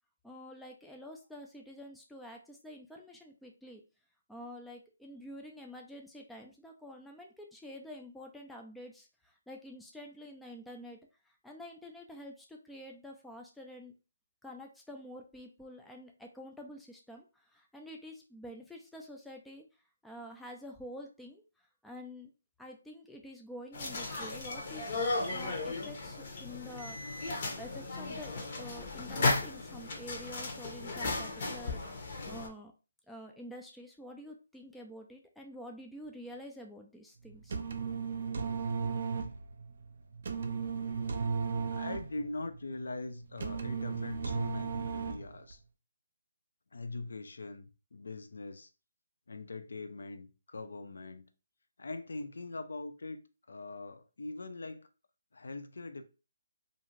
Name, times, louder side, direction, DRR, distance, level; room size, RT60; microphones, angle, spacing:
voice 1, 0.2-3.8 4.3-11.0 11.2-13.9 14.4-19.6 20.0-22.3 22.6-32.7 33.1-37.6, equal, ahead, 0.3 m, -48 dB
sound 1, 23.7-32.5, left 3 dB, 45° left, 0.8 m, -35 dB
sound 2, 37.3-45.5, right 5 dB, 60° right, 0.4 m, -35 dB
voice 2, 41.7-45.6 46.7-48.7 49.3-51.3 51.8-53.2 53.5-54.9 55.3-56.0, left 3 dB, 75° left, 0.4 m, -42 dB
2.5 x 2.4 x 3.0 m
hypercardioid pair, 155°, 0 cm